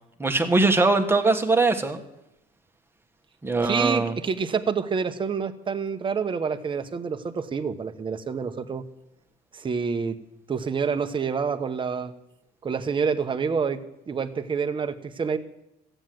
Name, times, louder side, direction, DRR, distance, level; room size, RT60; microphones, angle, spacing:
voice 1, 0.2-2.0 3.4-4.2, right 3 dB, 15° right, 5 dB, 1.4 m, -21 dB
voice 2, 3.6-8.8 9.5-10.2 10.5-12.1 12.6-13.8 14.1-15.4, right 6 dB, 30° right, 8 dB, 1.0 m, -27 dB
14.0 x 9.1 x 7.7 m, 0.86 s
cardioid pair, 110°, 17 cm